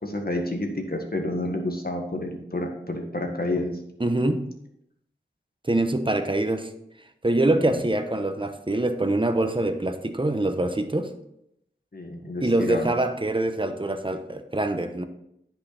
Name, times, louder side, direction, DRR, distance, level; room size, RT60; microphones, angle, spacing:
voice 1, 0.0-3.7 7.5-7.8 11.9-12.9, left 1 dB, 50° left, 3 dB, 1.7 m, -29 dB
voice 2, 4.0-4.5 5.6-6.7 7.2-11.1 12.4-15.0, right 2 dB, 25° right, 7 dB, 1.0 m, -24 dB
9.8 x 5.8 x 4.2 m, 0.78 s
wide cardioid pair, 45°, 19 cm